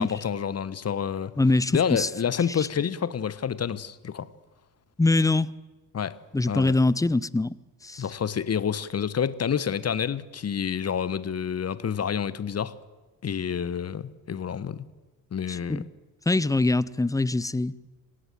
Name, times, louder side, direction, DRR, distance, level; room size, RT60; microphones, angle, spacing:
voice 1, 0.0-1.3 1.7-4.3 5.9-6.2 6.5-6.7 8.0-12.8 13.2-14.8 15.3-15.8, left 7 dB, 30° left, 1.3 m, -28 dB
voice 2, 1.4-2.1 2.6-2.7 5.0-5.5 6.3-7.6 7.8-8.0 15.5-15.8 16.3-17.8, left 2 dB, 5° left, 0.7 m, -23 dB
26.5 x 17.5 x 7.8 m
figure-of-eight pair, 50°, 49 cm